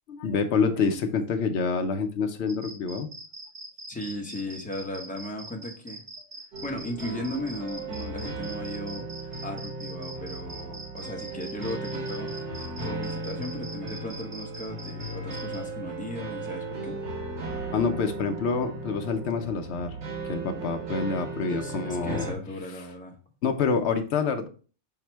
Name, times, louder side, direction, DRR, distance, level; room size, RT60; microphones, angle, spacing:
voice 1, 0.1-3.1 17.7-19.9 20.2-22.3 23.4-24.5, left 5 dB, 65° left, 6 dB, 0.8 m, -27 dB
sound 1, 2.5-15.6, right 2 dB, 35° right, 1.0 m, -43 dB
voice 2, 3.9-6.0 6.6-17.0 21.4-23.2, left 1 dB, 10° left, 2 dB, 0.6 m, -37 dB
sound 2, 6.5-22.3, right 2 dB, 60° right, 1.3 m, -36 dB
5.7 x 2.1 x 4.4 m, 0.38 s
omnidirectional pair, 1.4 m